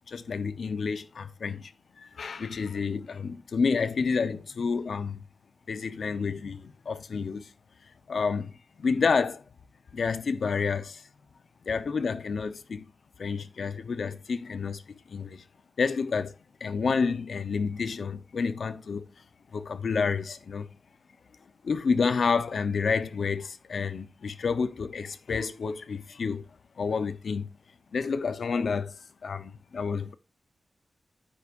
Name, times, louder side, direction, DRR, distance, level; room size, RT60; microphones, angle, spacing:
voice 1, 0.1-1.7 2.0-5.2 5.7-7.5 8.1-9.4 9.9-11.0 11.7-12.9 13.2-15.4 15.8-16.3 16.6-19.0 19.5-20.7 21.6-26.5 26.8-27.5 27.9-30.1, left 5 dB, 75° left, 0.8 m, -29 dB
9.9 x 8.8 x 2.6 m
wide cardioid pair, 135°, 0 cm